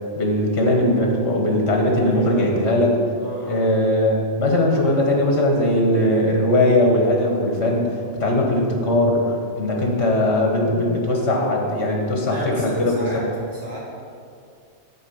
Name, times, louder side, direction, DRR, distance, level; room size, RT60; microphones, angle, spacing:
voice 1, 0.2-2.9 3.4-12.9, left 1 dB, 65° left, 0 dB, 1.7 m, -20 dB
voice 2, 2.0-2.5 3.2-3.8 12.3-13.2 13.5-13.8, equal, 30° right, -7 dB, 2.6 m, -33 dB
11.0 x 4.6 x 7.1 m, 2.3 s
omnidirectional pair, 1.2 m